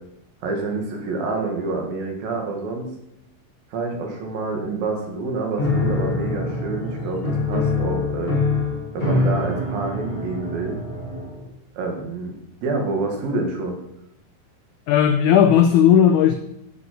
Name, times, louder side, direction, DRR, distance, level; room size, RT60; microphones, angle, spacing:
voice 1, 0.4-2.9 3.7-8.4 8.9-10.8 11.8-12.3 12.6-13.8, right 3 dB, 70° right, 2 dB, 3.7 m, -27 dB
Piano, 5.6-11.5, left 3 dB, 25° left, 1.3 m, -24 dB
voice 2, 14.9-16.3, left 9 dB, 85° left, 8 dB, 1.7 m, -15 dB
9.5 x 7.6 x 7.9 m, 0.82 s
omnidirectional pair, 4.3 m